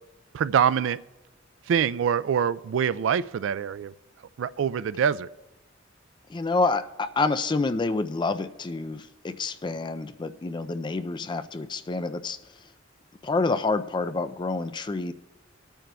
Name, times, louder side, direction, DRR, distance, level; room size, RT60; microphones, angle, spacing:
voice 1, 0.3-1.0 1.7-3.9 4.4-5.3, right 7 dB, 75° right, 18 dB, 0.3 m, -24 dB
voice 2, 6.3-12.4 13.2-15.1, left 3 dB, 25° left, 10 dB, 0.4 m, -28 dB
24.0 x 8.9 x 2.3 m, 1.0 s
head